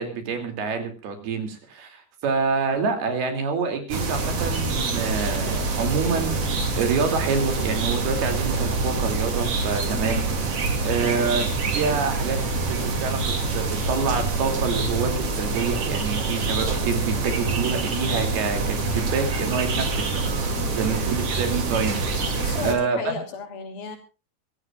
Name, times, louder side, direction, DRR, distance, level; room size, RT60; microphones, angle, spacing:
voice 1, 0.0-10.2 10.8-12.4 12.7-20.1 20.4-23.2, right 5 dB, 65° right, 7 dB, 4.5 m, -27 dB
sound 1, 3.9-22.7, right 3 dB, 40° right, 3.1 m, -26 dB
voice 2, 9.9-10.2 20.6-20.9 22.4-24.0, left 5 dB, 60° left, 5 dB, 4.6 m, -35 dB
25.5 x 15.0 x 2.4 m, 0.32 s
omnidirectional pair, 5.1 m